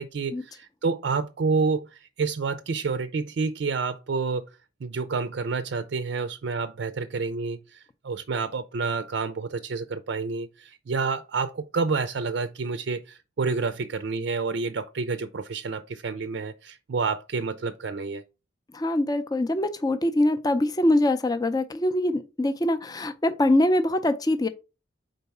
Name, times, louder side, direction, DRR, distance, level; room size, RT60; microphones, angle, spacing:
voice 1, 0.0-4.5 4.8-18.2, right 4 dB, 65° right, 0.4 m, -29 dB
voice 2, 18.7-24.5, left 1 dB, 20° left, 0.5 m, -23 dB
4.6 x 3.8 x 5.4 m
head